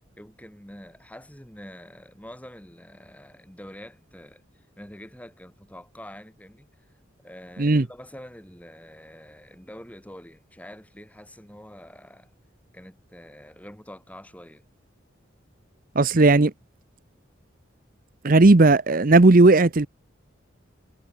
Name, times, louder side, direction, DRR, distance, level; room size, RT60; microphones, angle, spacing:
voice 1, 0.2-4.4 4.8-6.7 7.2-12.3 12.7-14.6, equal, 5° left, 6.6 m, -45 dB
voice 2, 15.9-16.5 18.2-19.9, right 2 dB, 45° right, 0.8 m, -15 dB
head